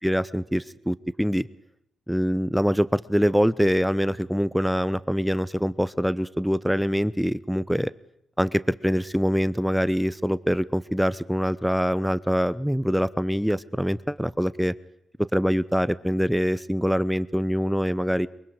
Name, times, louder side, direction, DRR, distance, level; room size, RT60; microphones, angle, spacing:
voice 1, 0.0-1.5 2.1-7.9 8.4-14.7 15.3-18.3, equal, ahead, 17 dB, 0.7 m, -24 dB
23.5 x 23.0 x 4.9 m, 0.80 s
supercardioid pair, 45°, 0 cm